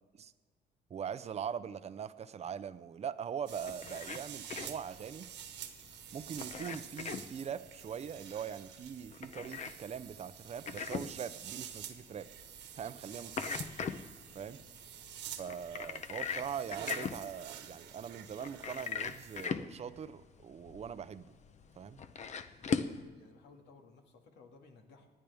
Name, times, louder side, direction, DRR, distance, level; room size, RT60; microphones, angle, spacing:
voice 1, 0.9-5.3 6.1-12.3 12.8-13.3 14.3-14.6 15.4-21.3 21.8-22.0, right 8 dB, 35° right, 13 dB, 0.7 m, -42 dB
sound 1, 3.5-23.0, left 6 dB, 40° left, 0.8 m, -41 dB
sound 2, 3.5-19.5, right 10 dB, 80° right, 1.5 m, -49 dB
voice 2, 12.8-13.3 14.6-14.8 22.5-25.1, left 4 dB, 70° left, 3 dB, 2.1 m, -60 dB
25.5 x 10.0 x 3.5 m, 1.5 s
cardioid pair, 125°, 18 cm